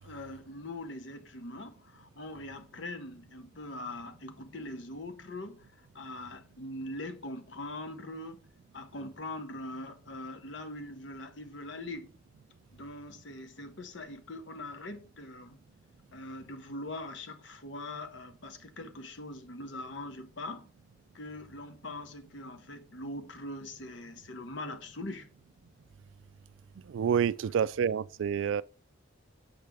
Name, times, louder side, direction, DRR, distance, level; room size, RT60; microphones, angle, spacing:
voice 1, 0.0-8.4 8.7-12.1 12.7-15.6 16.1-20.7 21.1-25.3, left 2 dB, 65° left, 0.9 m, -42 dB
voice 2, 26.8-28.6, right 7 dB, 75° right, 0.3 m, -28 dB
7.4 x 3.4 x 6.2 m
head